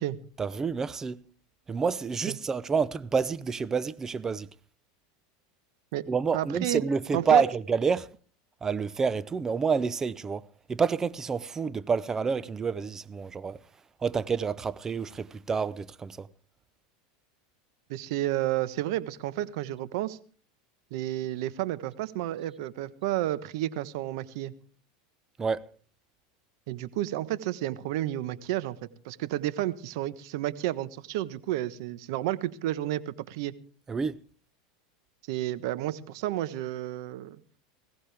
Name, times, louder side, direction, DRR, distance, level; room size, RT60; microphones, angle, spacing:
voice 1, 0.4-1.2 1.7-4.5 6.1-8.1 8.6-10.4 10.7-13.6 14.0-16.3 25.4-25.7 33.9-34.2, right 5 dB, 20° right, 0.7 m, -28 dB
voice 2, 6.3-6.8 7.1-7.4 17.9-20.2 20.9-24.5 26.7-28.8 29.0-33.5 35.3-37.4, right 14 dB, 70° right, 1.2 m, -31 dB
20.5 x 16.5 x 3.5 m
supercardioid pair, 120°, 3 cm